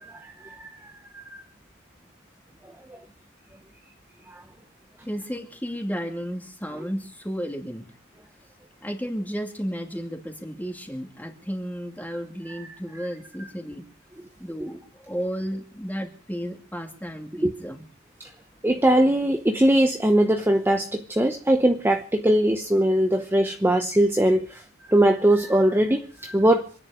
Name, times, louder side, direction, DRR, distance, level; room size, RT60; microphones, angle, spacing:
voice 1, 0.0-1.2 2.9-3.0 4.3-4.4 17.4-17.5 18.2-18.3 18.6-24.6 24.9-26.7, right 1 dB, 10° right, 0.8 m, -21 dB
voice 2, 5.0-7.9 8.8-13.8 14.4-14.8 15.1-17.8, equal, 10° left, 2.6 m, -33 dB
26.5 x 10.0 x 5.0 m
head